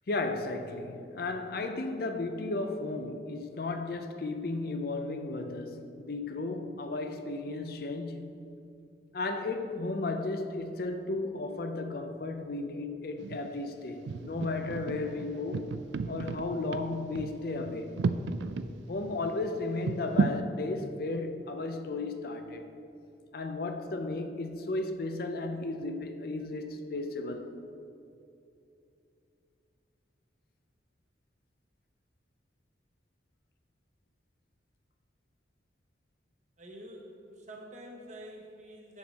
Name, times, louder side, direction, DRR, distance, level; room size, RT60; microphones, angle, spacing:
voice 1, 0.1-8.4 9.1-15.7 16.1-18.0 18.9-22.7 23.3-27.5, left 2 dB, 50° left, 0.5 m, -34 dB
sound 1, 13.2-13.6 14.1-18.7 19.1-19.2 19.8-20.4, right 4 dB, 70° right, 0.3 m, -33 dB
voice 2, 36.6-39.0, right 1 dB, 40° right, 1.1 m, -47 dB
7.9 x 7.1 x 4.1 m
head